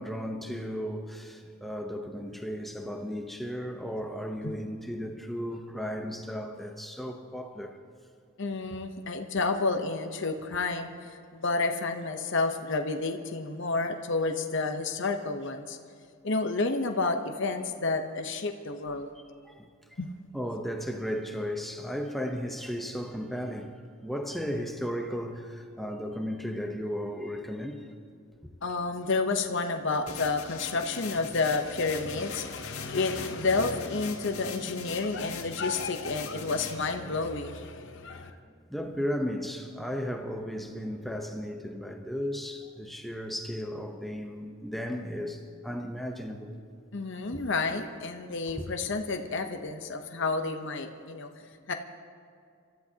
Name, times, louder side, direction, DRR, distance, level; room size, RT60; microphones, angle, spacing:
voice 1, 0.0-7.8 19.4-20.0 20.3-23.8 24.0-27.9 38.2-38.4 38.7-46.6 47.3-47.4 47.7-47.8 48.6-48.7, equal, ahead, 0.8 m, -35 dB
voice 2, 8.4-15.8 16.2-19.1 20.0-20.2 28.6-38.3 46.9-51.3 51.7-51.8, left 3 dB, 55° left, 0.9 m, -30 dB
sound 1, 30.1-36.9, left 6 dB, 80° left, 2.0 m, -42 dB
28.0 x 13.5 x 2.9 m
head